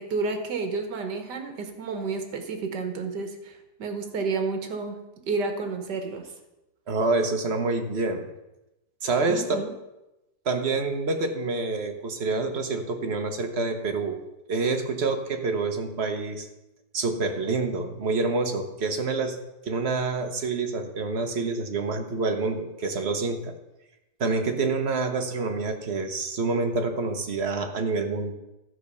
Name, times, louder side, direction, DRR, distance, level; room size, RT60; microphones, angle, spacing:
voice 1, 0.0-5.0 5.3-6.3 9.3-9.7, right 4 dB, 75° right, 6 dB, 1.8 m, -31 dB
voice 2, 6.9-8.3 9.0-9.6 10.4-14.2 14.5-16.5 16.9-19.4 19.6-23.5 24.2-28.3, right 3 dB, 45° right, 5 dB, 1.1 m, -27 dB
12.5 x 5.1 x 6.7 m, 0.96 s
omnidirectional pair, 1.8 m